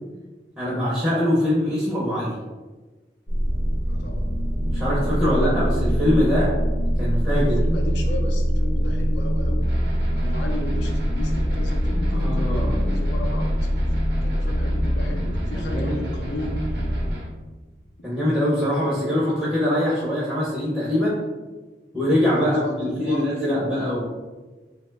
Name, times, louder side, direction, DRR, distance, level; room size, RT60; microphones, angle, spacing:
voice 1, 0.6-2.4 4.7-6.5 7.0-7.6 12.1-12.7 15.5-16.0 18.0-21.2 21.9-24.1, left 1 dB, 5° right, -8 dB, 0.5 m, -23 dB
sound 1, 3.3-17.1, equal, 40° left, 0.6 m, -23 dB
voice 2, 3.9-4.3 5.1-5.6 7.2-9.7 10.1-13.7 14.2-16.9 17.3-17.4 22.2-24.1, left 1 dB, 85° left, 2 dB, 0.5 m, -35 dB
sound 2, 9.6-17.3, equal, 70° right, 0.7 m, -36 dB
2.8 x 2.2 x 3.2 m, 1.2 s
head